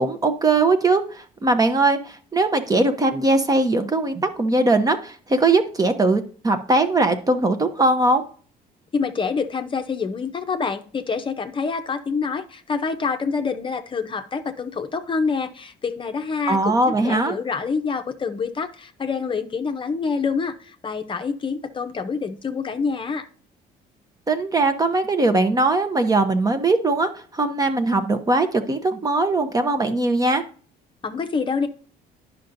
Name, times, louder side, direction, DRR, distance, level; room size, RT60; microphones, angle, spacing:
voice 1, 0.0-8.2 16.5-17.4 24.3-30.4, right 2 dB, 20° right, 8 dB, 0.8 m, -20 dB
voice 2, 8.9-23.3 31.0-31.7, left 5 dB, 30° left, 6 dB, 0.7 m, -26 dB
10.0 x 5.8 x 2.6 m, 0.43 s
cardioid pair, 110°, 17 cm